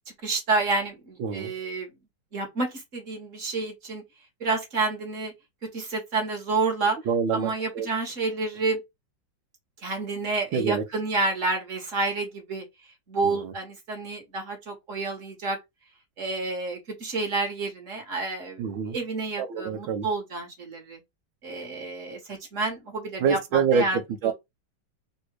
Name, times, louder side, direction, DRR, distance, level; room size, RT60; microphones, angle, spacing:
voice 1, 0.2-1.9 2.3-4.0 4.4-5.3 5.7-7.0 7.3-8.8 9.8-12.6 13.1-15.6 16.2-21.0 21.4-24.3, right 3 dB, 40° right, 1.8 m, -29 dB
voice 2, 1.2-1.5 7.1-7.9 10.5-10.8 13.2-13.5 18.6-19.0 19.4-20.1 23.2-23.8 24.2-24.3, right 6 dB, 80° right, 1.5 m, -26 dB
3.9 x 2.7 x 4.5 m
omnidirectional pair, 2.2 m